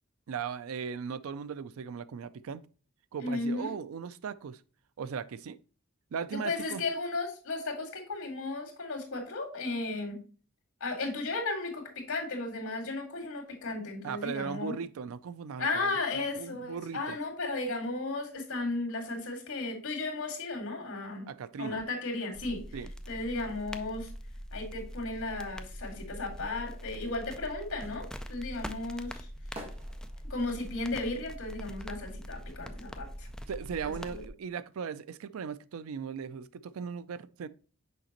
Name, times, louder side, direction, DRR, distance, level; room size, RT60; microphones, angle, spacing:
voice 1, 0.3-2.6 3.1-4.6 5.0-5.6 6.1-6.8 14.0-17.2 21.3-21.8 22.7-22.9 33.5-37.5, right 6 dB, 75° right, 0.4 m, -38 dB
voice 2, 3.2-3.7 6.3-10.2 10.8-14.7 15.6-21.3 21.6-22.7 23.1-24.1 24.5-29.3 30.3-33.3 33.8-34.2, left 3 dB, 85° left, 2.1 m, -35 dB
sound 1, 22.3-34.3, equal, 5° left, 0.3 m, -43 dB
sound 2, 27.8-32.8 33.1-34.7 34.9-35.0, right 1 dB, 30° right, 1.4 m, -51 dB
6.4 x 5.1 x 2.9 m
head